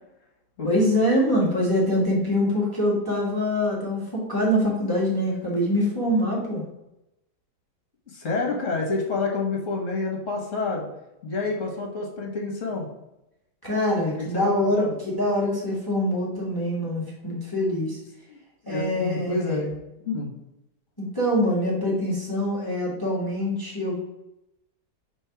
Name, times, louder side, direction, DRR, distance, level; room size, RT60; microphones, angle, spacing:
voice 1, 0.6-6.6 13.6-14.8 15.1-18.0 18.7-19.6 21.0-24.0, left 1 dB, 15° left, -5 dB, 1.4 m, -24 dB
voice 2, 8.1-10.9 11.2-12.9 14.2-14.9 17.9-18.0 18.3-18.4 18.6-19.8 20.0-20.3, left 3 dB, 50° left, 0 dB, 1.6 m, -28 dB
5.4 x 3.4 x 5.7 m, 0.89 s
omnidirectional pair, 1.8 m